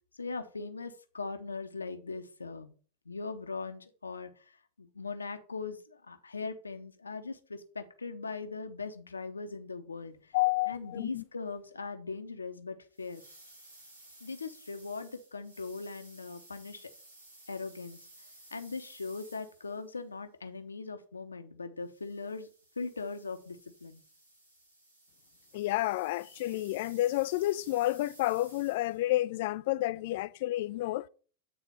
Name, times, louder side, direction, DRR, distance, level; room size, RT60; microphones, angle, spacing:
voice 1, 0.1-2.8 3.1-10.3 10.7-13.2 14.2-16.9 17.5-18.0 18.5-22.5 22.8-24.0, left 4 dB, 75° left, 0.8 m, -40 dB
voice 2, 10.3-11.2 25.5-31.1, left 16 dB, 50° left, 0.3 m, -30 dB
sound 1, 12.9-20.0 21.9-29.1, right 1 dB, 75° right, 2.5 m, -56 dB
8.6 x 4.0 x 5.6 m
figure-of-eight pair, 90°, 0 cm